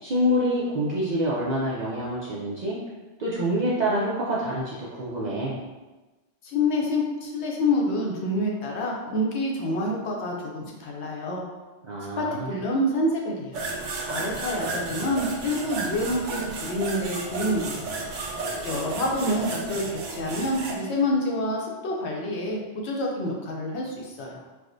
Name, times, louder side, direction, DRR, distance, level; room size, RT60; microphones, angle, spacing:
voice 1, 0.0-2.8 3.2-5.6 11.9-12.5, equal, 55° right, -7 dB, 0.5 m, -26 dB
voice 2, 6.4-11.4 12.2-13.7 14.1-17.9 18.6-24.4, left 1 dB, 70° left, -2 dB, 0.9 m, -27 dB
sound 1, 13.5-20.8, right 3 dB, 80° right, 0.9 m, -33 dB
4.6 x 2.1 x 2.5 m, 1.2 s
omnidirectional pair, 1.3 m